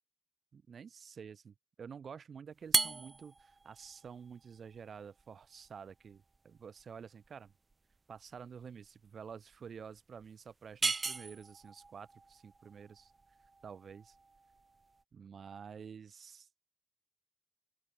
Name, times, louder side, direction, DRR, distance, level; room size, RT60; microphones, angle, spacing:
voice 1, 0.5-7.5 8.1-13.1 13.6-14.2 15.1-16.6, right 6 dB, 75° right, 4.1 m, -50 dB
sound 1, 2.6-15.0, right 3 dB, 30° right, 0.4 m, -39 dB
open air
wide cardioid pair, 155°, 0 cm